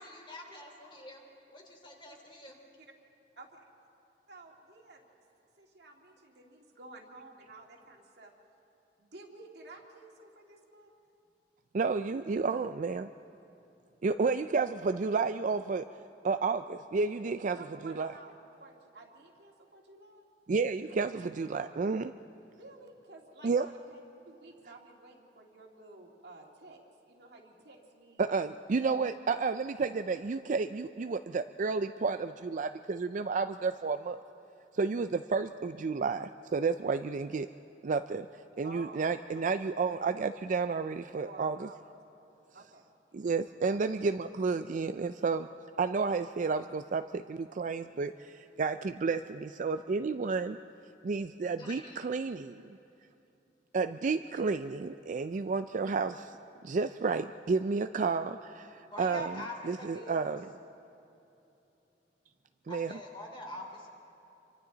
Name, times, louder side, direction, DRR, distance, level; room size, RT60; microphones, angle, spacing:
voice 1, 0.0-1.2 1.5-2.6 51.6-52.0 58.9-60.3 62.7-63.9, left 1 dB, 30° left, 1 dB, 3.1 m, -45 dB
voice 2, 4.3-5.1 5.6-8.3 9.0-10.9 17.4-20.2 22.6-24.0 24.3-26.8 27.1-28.3 38.6-39.4 41.2-41.8 42.5-42.8 43.7-43.8, right 2 dB, 65° right, 0 dB, 2.3 m, -52 dB
voice 3, 11.7-13.1 14.0-15.8 16.2-17.6 17.8-18.1 20.5-22.1 23.4-23.7 28.2-34.2 34.7-37.5 37.8-38.3 38.6-41.7 43.1-45.5 45.8-50.6 51.0-52.7 53.7-56.4 56.6-59.4 59.6-60.5 62.7-62.9, right 4 dB, 45° right, 9 dB, 0.4 m, -31 dB
27.5 x 24.5 x 4.0 m, 2.9 s
head